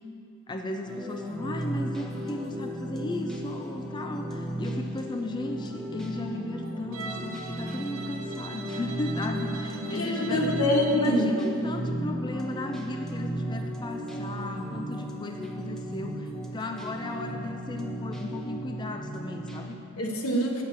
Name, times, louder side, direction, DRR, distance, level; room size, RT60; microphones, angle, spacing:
voice 1, 0.5-10.6 10.9-19.8, left 2 dB, 20° left, 4 dB, 0.4 m, -35 dB
sound 1, 0.9-19.7, right 1 dB, 5° left, 0.7 m, -35 dB
Bowed string instrument, 6.9-11.1, right 4 dB, 70° right, 0.7 m, -42 dB
voice 2, 9.9-11.3 20.0-20.6, left 1 dB, 80° left, 0 dB, 1.3 m, -25 dB
8.5 x 5.7 x 7.3 m, 2.8 s
head